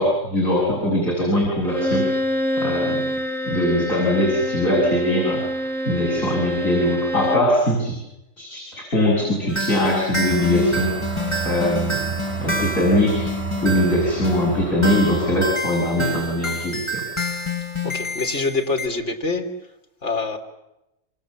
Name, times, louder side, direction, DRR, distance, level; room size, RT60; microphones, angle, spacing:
voice 1, 0.0-2.1 2.6-3.1 3.4-5.4 5.9-7.9 8.4-12.0 12.4-13.3 13.6-17.0, left 1 dB, 80° left, -1 dB, 7.8 m, -21 dB
Bowed string instrument, 1.6-7.6, equal, ahead, 1.7 m, -26 dB
sound 1, 9.5-18.9, equal, 20° left, 4.3 m, -28 dB
sound 2, 10.3-15.5, right 5 dB, 25° right, 1.8 m, -31 dB
voice 2, 17.8-19.5 20.0-20.4, left 3 dB, 55° left, 3 dB, 3.8 m, -25 dB
28.0 x 26.0 x 7.4 m, 0.91 s
omnidirectional pair, 1.4 m